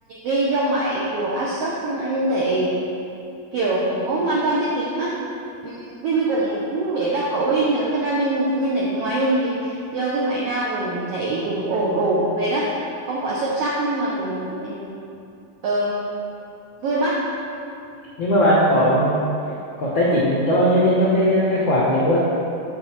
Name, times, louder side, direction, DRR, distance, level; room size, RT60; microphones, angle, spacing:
voice 1, 0.1-2.8 3.5-5.2 5.6-12.7 13.1-15.0 15.6-16.3 16.8-17.2, right 2 dB, 80° right, -5 dB, 1.3 m, -23 dB
voice 2, 18.2-19.3 19.8-22.2, equal, 80° left, -6 dB, 1.0 m, -18 dB
7.0 x 6.4 x 4.4 m, 2.6 s
omnidirectional pair, 3.7 m